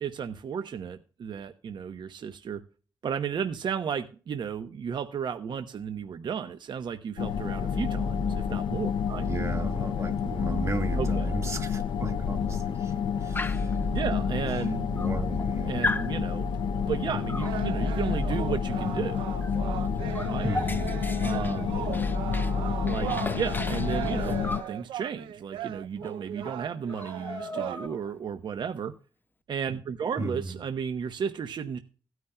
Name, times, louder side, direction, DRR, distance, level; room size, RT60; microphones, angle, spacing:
voice 1, 0.0-2.6 3.0-9.3 11.0-11.3 13.9-14.9 15.7-16.5 16.9-19.3 20.2-20.5 21.2-21.8 22.8-24.4 24.7-28.9 29.5-31.8, right 7 dB, 65° right, 0.9 m, -33 dB
sound 1, 7.2-24.6, left 6 dB, 80° left, 0.6 m, -29 dB
voice 2, 9.2-13.8 14.6-14.7 14.9-15.9 20.4-20.9 21.9-22.2 30.2-30.6, right 3 dB, 35° right, 1.7 m, -36 dB
Dog, 13.3-13.8 14.6-14.7 15.0-15.5 15.8-16.1 17.3-17.6 19.4-19.6 19.8-22.6 22.9-24.7 26.0-26.1 26.4-26.6 26.9-28.1, left 3 dB, 25° left, 0.9 m, -36 dB
sound 2, 17.4-27.9, right 12 dB, 90° right, 0.5 m, -38 dB
16.0 x 9.4 x 2.2 m
supercardioid pair, 55°, 8 cm